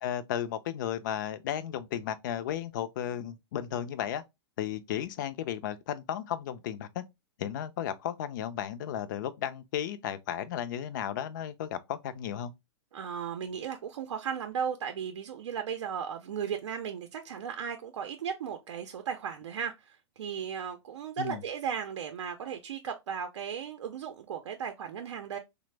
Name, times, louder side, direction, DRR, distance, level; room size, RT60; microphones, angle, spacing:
voice 1, 0.0-4.2 4.6-7.0 7.4-12.5 21.2-21.4, left 10 dB, 45° left, 0.4 m, -34 dB
voice 2, 12.9-25.4, right 7 dB, 85° right, 0.5 m, -36 dB
3.3 x 2.0 x 3.1 m
hypercardioid pair, 160°, 15 cm